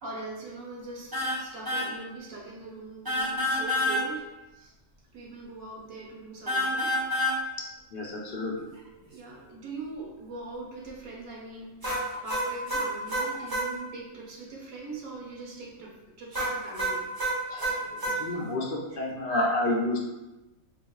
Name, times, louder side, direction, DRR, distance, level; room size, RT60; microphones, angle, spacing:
voice 1, 0.0-4.3 4.5-4.7 5.1-7.0 8.7-17.1, right 3 dB, 85° right, -3 dB, 1.2 m, -41 dB
sound 1, 1.1-1.4 1.7-1.9 3.1-4.0 6.5-7.4 11.8-13.7 16.3-18.2, equal, 25° right, 0.5 m, -28 dB
voice 2, 7.9-8.5 17.5-20.0, left 1 dB, 60° left, -1 dB, 0.6 m, -30 dB
3.6 x 2.9 x 2.3 m, 1.0 s
omnidirectional pair, 1.4 m